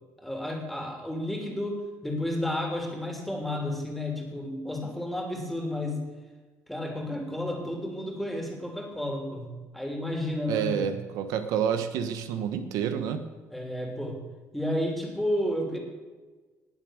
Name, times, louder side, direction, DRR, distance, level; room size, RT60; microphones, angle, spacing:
voice 1, 0.2-6.0 6.7-10.9 13.5-14.2 14.5-15.8, left 1 dB, ahead, 2 dB, 3.3 m, -32 dB
voice 2, 10.5-13.2, right 8 dB, 90° right, 9 dB, 1.2 m, -29 dB
19.5 x 7.4 x 6.5 m, 1.3 s
cardioid pair, 120°, 6 cm